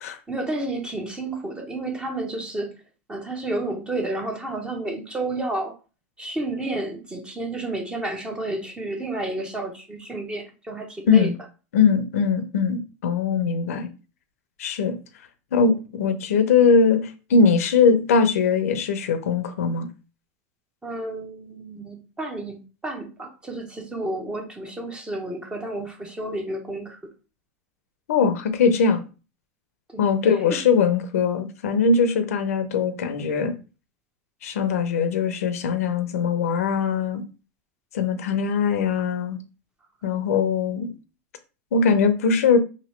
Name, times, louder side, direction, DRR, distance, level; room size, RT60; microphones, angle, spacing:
voice 1, 0.3-2.8 3.1-5.8 6.2-11.3 20.8-27.0 29.9-30.0, right 2 dB, 10° right, 0.7 m, -31 dB
voice 2, 11.7-13.9 14.6-15.0 15.5-19.9 28.1-29.0 30.0-33.5 34.4-37.2 37.9-39.4 40.0-40.9 41.7-42.6, left 5 dB, 90° left, 0.5 m, -21 dB
2.9 x 2.8 x 3.0 m
supercardioid pair, 125°, 8 cm